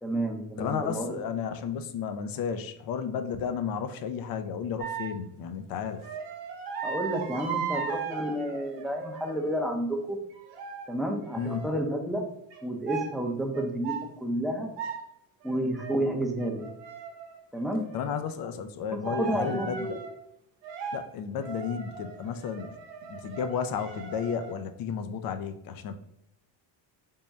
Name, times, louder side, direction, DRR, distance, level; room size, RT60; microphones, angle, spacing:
voice 1, 0.0-1.2 6.8-10.2 10.9-12.2 12.6-14.7 15.4-16.6 17.5-17.8 18.9-20.0, right 1 dB, ahead, 2 dB, 0.5 m, -30 dB
voice 2, 0.6-6.0 11.4-11.7 17.9-20.0 20.9-22.8 23.1-25.9, left 7 dB, 50° left, 9 dB, 0.5 m, -33 dB
sound 1, 4.8-5.2 5.9-9.6 10.3-10.9 11.3-11.7 12.5-12.6 12.9-13.1 13.5-14.1 14.5-15.0 15.4-16.0 16.4-18.2 19.0-20.1 20.6-21.0 21.3-24.5, right 6 dB, 90° right, 0.9 m, -37 dB
3.6 x 2.1 x 3.9 m, 0.78 s
cardioid pair, 105°, 45 cm